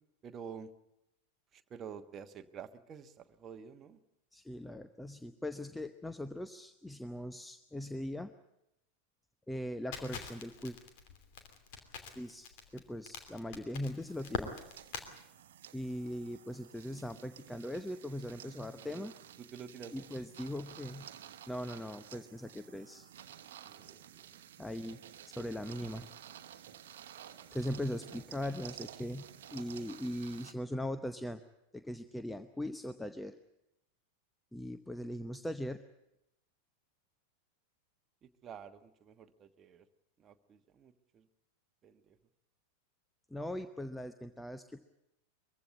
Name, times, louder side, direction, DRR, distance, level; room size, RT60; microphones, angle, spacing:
voice 1, 0.2-0.7 1.5-4.0 16.9-17.0 18.9-19.0 19.4-20.1 23.6-24.4 38.2-39.9 40.2-41.3 41.8-42.2, right 7 dB, 25° right, 8 dB, 1.3 m, -49 dB
voice 2, 4.3-8.3 9.5-10.8 12.1-12.5 12.7-14.5 15.7-19.1 19.9-21.1 21.5-23.1 24.6-25.0 25.3-26.1 27.5-31.4 31.7-33.4 34.5-35.8 43.3-44.8, left 1 dB, 5° left, 10 dB, 0.8 m, -40 dB
Crackle, 9.9-15.1, left 6 dB, 50° left, 2.8 m, -44 dB
sound 1, 14.1-30.5, right 10 dB, 60° right, 1.1 m, -53 dB
23.0 x 15.5 x 9.6 m, 0.85 s
figure-of-eight pair, 90°, 0 cm